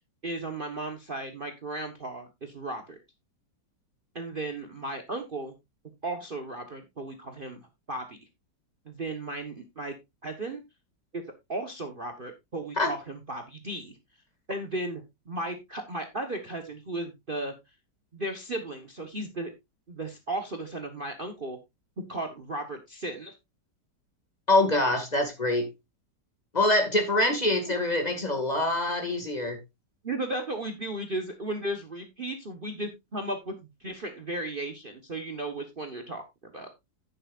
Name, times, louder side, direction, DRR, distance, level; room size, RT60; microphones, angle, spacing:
voice 1, 0.2-3.0 4.1-5.5 6.0-8.2 8.8-9.9 10.2-10.6 11.1-11.2 11.5-13.9 14.5-17.5 18.1-19.5 19.9-21.6 22.1-23.3 30.0-33.5 33.8-36.7, right 2 dB, 30° right, 1.3 m, -35 dB
voice 2, 24.5-25.7 26.5-29.6, left 2 dB, 25° left, 2.2 m, -25 dB
10.5 x 9.9 x 2.5 m
omnidirectional pair, 1.9 m